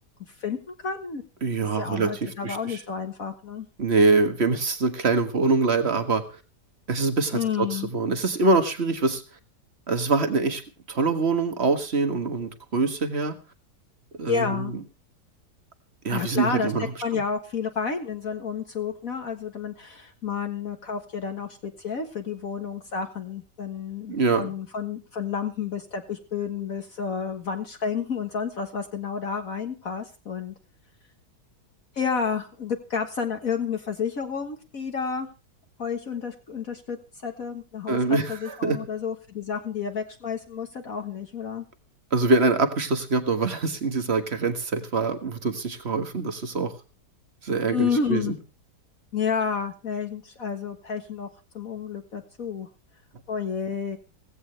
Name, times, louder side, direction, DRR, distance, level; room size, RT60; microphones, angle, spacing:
voice 1, 0.4-1.2 1.8-3.7 7.3-7.9 14.3-14.7 16.1-16.7 17.0-30.5 32.0-35.3 35.8-37.0 37.2-41.6 47.7-48.4 49.1-51.3 51.5-52.7 53.3-54.0, left 6 dB, 55° left, 4 dB, 1.9 m, -30 dB
voice 2, 1.4-2.8 3.8-6.2 6.9-9.2 9.9-10.6 10.9-13.3 14.2-14.6 16.0-16.9 24.1-24.5 37.9-38.8 42.1-46.7 47.4-48.3, right 3 dB, 40° right, 8 dB, 1.8 m, -24 dB
17.0 x 16.0 x 3.4 m, 0.33 s
omnidirectional pair, 1.8 m